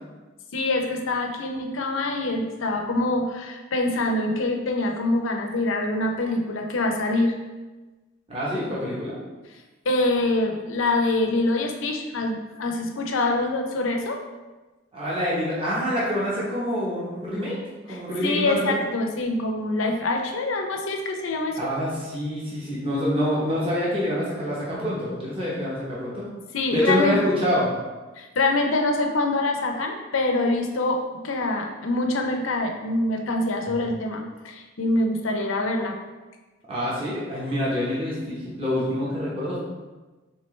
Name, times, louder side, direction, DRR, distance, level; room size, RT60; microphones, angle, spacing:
voice 1, 0.5-7.4 9.9-14.2 17.9-21.7 26.5-27.2 28.2-31.0 31.2-35.9, left 2 dB, 75° left, 3 dB, 0.6 m, -25 dB
voice 2, 8.3-9.1 14.9-17.6 17.8-18.7 21.6-26.3 26.7-27.7 36.7-39.6, equal, 25° right, -6 dB, 0.9 m, -26 dB
4.4 x 3.7 x 3.1 m, 1.2 s
head